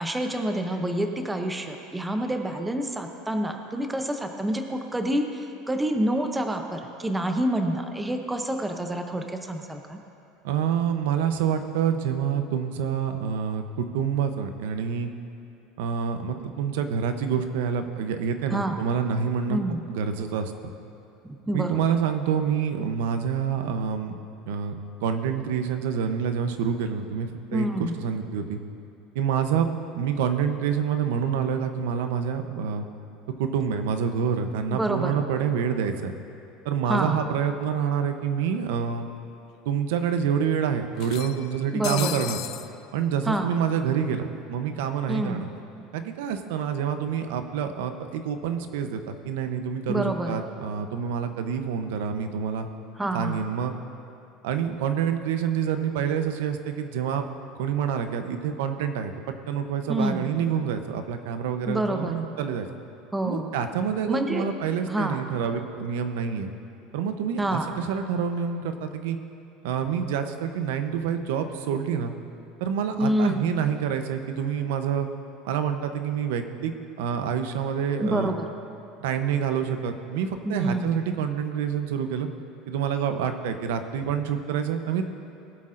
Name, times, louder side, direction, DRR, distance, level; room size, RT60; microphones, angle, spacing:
voice 1, 0.0-10.0 18.5-18.8 19.5-19.8 21.2-22.0 27.5-28.0 34.7-35.1 36.9-37.2 41.7-42.1 43.3-43.5 45.1-45.4 49.9-50.4 53.0-53.4 59.9-60.3 61.7-62.1 63.1-63.5 64.1-64.5 64.9-65.2 67.4-67.7 73.0-73.6 78.0-78.5 80.4-81.0, right 1 dB, 5° right, 4 dB, 0.6 m, -27 dB
voice 2, 10.4-15.1 15.8-20.5 21.5-24.1 24.5-28.6 29.1-29.7 29.9-32.8 33.4-36.1 36.6-39.1 39.7-42.4 42.9-44.2 44.5-45.5 45.9-52.7 53.1-53.7 54.4-57.3 57.6-62.7 63.2-66.5 66.9-69.2 69.6-72.1 72.6-75.1 75.4-78.3 79.0-82.3 82.7-85.0, right 7 dB, 85° right, 8 dB, 0.7 m, -27 dB
sound 1, 37.6-37.7 38.0-38.1 39.1-39.2 39.6-39.7 41.0-42.7, left 15 dB, 45° left, 0.3 m, -35 dB
20.0 x 8.4 x 2.6 m, 2.7 s
cardioid pair, 170°, 0 cm